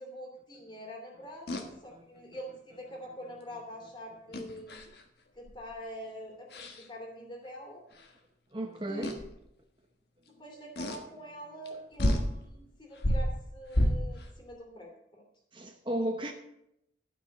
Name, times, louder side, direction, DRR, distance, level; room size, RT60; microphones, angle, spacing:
voice 1, 0.0-4.8 5.3-7.8 8.8-9.1 10.3-15.2, equal, 25° left, 1 dB, 2.9 m, -45 dB
sound 1, 1.5-1.7 4.3-5.0 5.5-5.7 6.5-6.8 8.0-8.1 9.0-9.3 10.8-11.0 11.7-11.8 12.0-12.3 13.0-14.3, equal, 60° left, 1.5 m, -30 dB
voice 2, 8.5-9.3 15.5-16.3, right 1 dB, 25° right, 4 dB, 0.8 m, -34 dB
12.5 x 6.2 x 7.8 m, 0.80 s
head